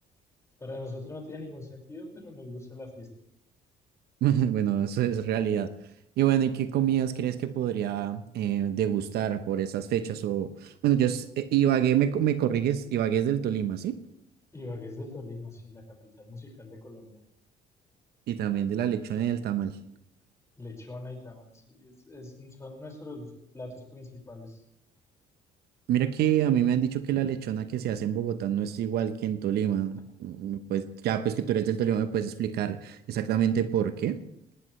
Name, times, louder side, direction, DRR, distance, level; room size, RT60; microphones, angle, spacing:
voice 1, 0.6-3.1 14.5-17.2 20.6-24.6, left 2 dB, 15° left, 1 dB, 5.4 m, -42 dB
voice 2, 4.2-5.7 6.2-14.0 18.3-19.8 25.9-34.2, right 10 dB, 70° right, 11 dB, 1.0 m, -27 dB
19.0 x 18.0 x 3.3 m, 0.76 s
cardioid pair, 110°, 17 cm